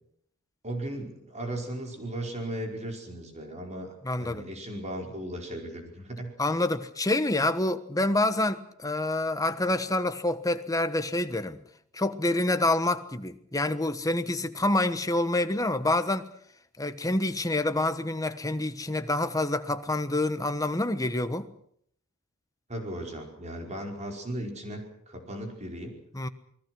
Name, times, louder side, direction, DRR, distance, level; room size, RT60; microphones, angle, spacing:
voice 1, 0.6-6.3 22.7-26.0, right 1 dB, 30° right, 5.0 m, -36 dB
voice 2, 4.0-4.5 6.4-11.6 11.9-16.3 16.8-21.5 26.1-26.3, left 2 dB, 15° left, 1.3 m, -27 dB
28.5 x 20.5 x 6.2 m
head